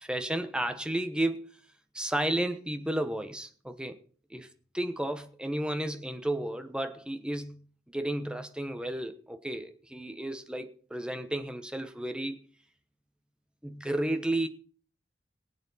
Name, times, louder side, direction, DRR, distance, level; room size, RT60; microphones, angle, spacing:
voice 1, 0.0-1.5 1.9-4.0 4.3-7.6 7.9-12.4 13.6-14.5, right 1 dB, 5° right, 1.1 m, -32 dB
23.0 x 8.0 x 4.0 m
head